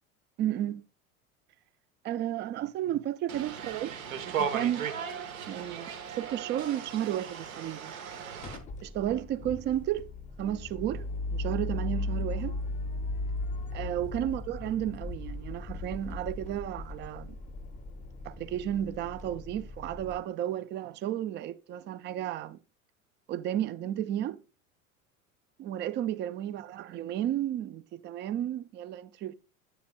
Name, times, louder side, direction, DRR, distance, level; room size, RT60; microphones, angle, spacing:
voice 1, 0.4-0.8 2.0-3.9 4.3-4.9 5.5-7.9 8.8-10.0 10.4-12.5 13.7-17.4 18.2-22.6 23.3-24.4 25.6-29.3, right 11 dB, 25° right, 0.4 m, -33 dB
sound 1, 3.3-8.6, right 7 dB, 70° right, 1.2 m, -37 dB
sound 2, 8.4-20.2, left 2 dB, 20° left, 0.6 m, -37 dB
8.5 x 6.9 x 2.3 m
figure-of-eight pair, 75°, 43 cm